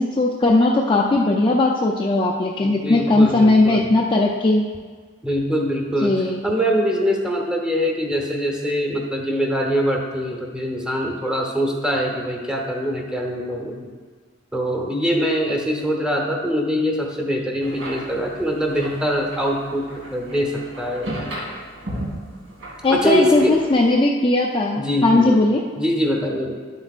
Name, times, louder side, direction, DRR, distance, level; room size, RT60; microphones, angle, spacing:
voice 1, 0.0-4.7 6.0-6.4 22.8-25.6, left 2 dB, 25° left, -1 dB, 0.4 m, -18 dB
voice 2, 2.6-4.0 5.2-13.8 14.5-21.1 22.9-23.6 24.8-25.4 25.8-26.5, equal, 5° right, 1 dB, 0.9 m, -23 dB
sound 1, 17.6-23.9, right 1 dB, 80° right, 2.4 m, -35 dB
11.0 x 7.8 x 2.5 m, 1.5 s
head